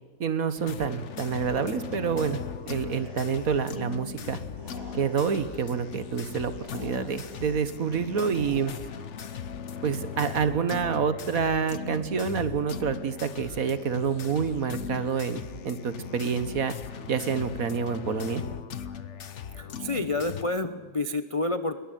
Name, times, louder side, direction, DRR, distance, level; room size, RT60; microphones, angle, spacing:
voice 1, 0.2-2.4 2.7-4.4 4.9-8.7 9.8-16.7 17.1-18.4, right 6 dB, 55° right, 12 dB, 1.6 m, -28 dB
sound 1, 0.6-20.4, left 7 dB, 50° left, 1.1 m, -38 dB
sound 2, 1.1-9.1, equal, 35° right, 7.9 m, -49 dB
voice 2, 19.6-21.8, left 2 dB, 35° left, 10 dB, 0.5 m, -29 dB
22.5 x 20.0 x 9.2 m, 1.3 s
omnidirectional pair, 1.9 m